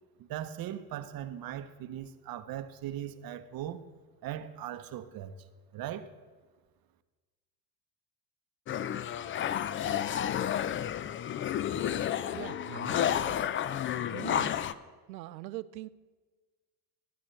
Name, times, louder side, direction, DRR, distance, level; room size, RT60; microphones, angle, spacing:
voice 1, 0.2-3.8 4.2-5.3 5.7-6.1, right 11 dB, 45° right, 12 dB, 0.9 m, -39 dB
sound 1, 8.7-14.7, left 10 dB, 25° left, 0.4 m, -31 dB
voice 2, 12.3-13.4 14.1-14.6 15.1-15.9, right 15 dB, 85° right, 18 dB, 0.6 m, -42 dB
19.5 x 9.3 x 3.2 m, 1.4 s
hypercardioid pair, 70°, 49 cm